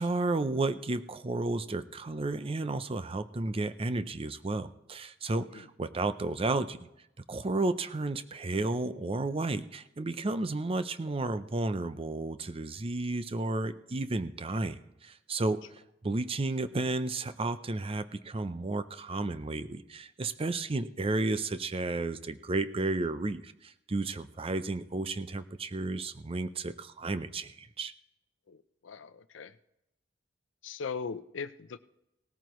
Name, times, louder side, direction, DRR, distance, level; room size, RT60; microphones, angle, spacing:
voice 1, 0.0-6.8 7.3-15.6 16.0-27.9, right 2 dB, 30° right, 12 dB, 0.5 m, -32 dB
voice 2, 28.5-29.6 30.6-31.8, left 5 dB, 85° left, 14 dB, 0.6 m, -40 dB
18.0 x 14.0 x 3.1 m, 0.86 s
head